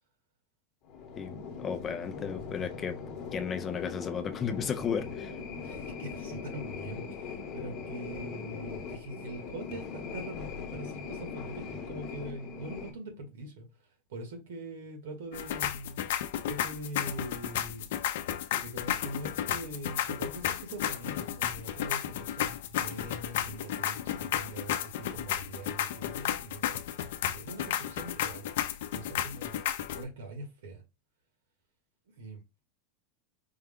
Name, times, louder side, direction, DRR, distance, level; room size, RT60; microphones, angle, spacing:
sound 1, 0.8-12.9, left 5 dB, 35° left, 1.0 m, -40 dB
voice 1, 1.2-3.0 3.3-5.3, left 7 dB, 20° left, 0.4 m, -34 dB
voice 2, 5.6-13.7 14.1-16.1 16.5-17.9 18.6-26.8 27.2-28.5 28.9-29.6 29.9-30.8 32.2-32.4, right 1 dB, 90° right, 1.7 m, -43 dB
sound 2, 15.3-30.0, left 11 dB, 70° left, 0.5 m, -33 dB
4.5 x 2.2 x 3.5 m
supercardioid pair, 175°, 0 cm